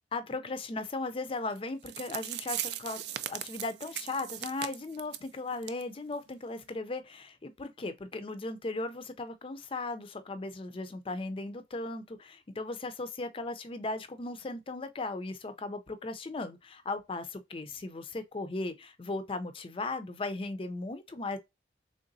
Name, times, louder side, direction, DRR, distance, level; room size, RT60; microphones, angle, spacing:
voice 1, 0.1-21.4, left 2 dB, 30° left, 0.4 m, -37 dB
sound 1, 1.6-1.7 1.9-5.3 5.6-5.8 6.1-6.2 6.7-6.8, right 12 dB, 70° right, 0.4 m, -38 dB
3.8 x 3.2 x 2.6 m
head